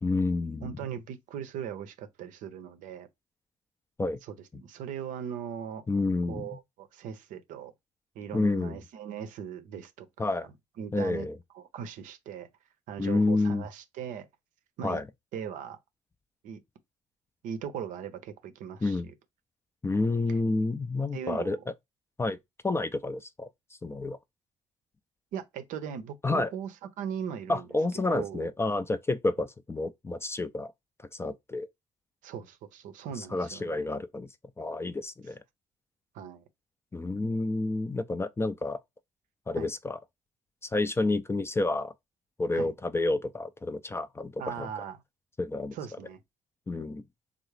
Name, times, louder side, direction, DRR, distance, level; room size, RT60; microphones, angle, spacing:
voice 1, 0.0-0.8 4.0-4.2 5.9-6.5 8.3-8.8 10.2-10.5 10.9-11.4 13.0-13.6 14.8-15.0 18.8-19.0 19.8-21.6 22.2-22.4 22.6-23.5 23.8-24.2 26.2-26.5 27.5-30.7 31.1-31.7 33.2-34.3 34.6-35.4 36.9-38.8 39.5-40.0 40.7-41.9 42.4-44.7 45.4-45.7 46.7-47.0, left 2 dB, 15° left, 0.4 m, -29 dB
voice 2, 0.6-3.1 4.2-5.8 6.3-7.7 8.1-10.1 10.8-11.3 11.5-12.5 12.9-14.3 14.8-15.0 15.3-15.8 16.4-16.6 17.4-19.1 21.1-21.7 25.3-27.7 27.9-28.5 32.2-33.9 36.1-36.4 39.5-39.7 42.5-42.7 44.4-45.0 45.7-46.2, right 8 dB, 60° right, 0.6 m, -39 dB
3.6 x 2.0 x 3.1 m
hypercardioid pair, 50°, 15 cm